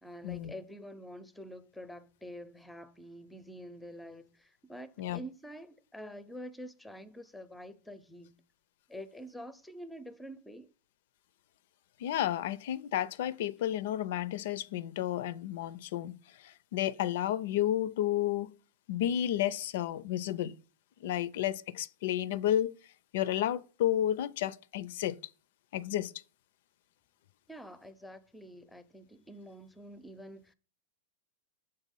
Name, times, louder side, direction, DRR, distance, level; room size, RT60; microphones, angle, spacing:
voice 1, 0.0-8.4 8.9-10.7 27.5-30.5, equal, 5° left, 0.6 m, -47 dB
voice 2, 12.0-16.1 16.4-18.5 18.9-20.6 21.0-22.7 23.1-25.2 25.7-26.1, left 12 dB, 65° left, 0.4 m, -31 dB
6.8 x 4.0 x 5.4 m
hypercardioid pair, 135°, 0 cm